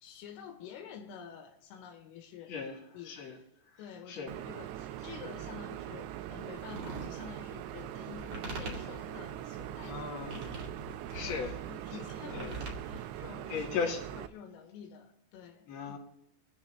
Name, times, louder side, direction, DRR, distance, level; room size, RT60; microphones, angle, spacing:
voice 1, 0.0-2.5 2.9-3.2 3.8-10.7 11.2-13.7 14.1-15.7, left 7 dB, 85° left, 4 dB, 3.8 m, -49 dB
voice 2, 2.5-3.4 3.7-3.8 4.1-4.3 9.8-10.6 11.1-11.5 11.9-12.0 12.3-12.6 13.5-14.0 15.7-16.0, left 5 dB, 55° left, 1 dB, 4.3 m, -37 dB
sound 1, 4.3-14.3, right 12 dB, 85° right, 2.5 m, -42 dB
sound 2, 6.5-13.3, right 2 dB, 40° right, 2.6 m, -44 dB
25.0 x 9.9 x 3.2 m, 0.83 s
omnidirectional pair, 5.8 m